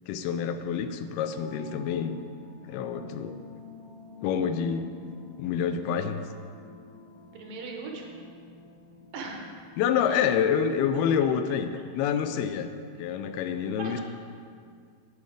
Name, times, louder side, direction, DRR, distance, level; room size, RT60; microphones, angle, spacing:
voice 1, 0.1-2.2 2.6-3.4 4.2-4.9 5.4-6.2 9.8-12.7 13.0-14.0, left 7 dB, 90° left, 9 dB, 2.5 m, -27 dB
sound 1, 1.3-10.4, left 3 dB, 40° left, 1.2 m, -50 dB
voice 2, 7.3-8.2 9.1-9.5 10.0-10.2 13.8-14.0, right 3 dB, 70° right, 0 dB, 2.5 m, -38 dB
8.4 x 8.3 x 4.9 m, 2.1 s
omnidirectional pair, 4.3 m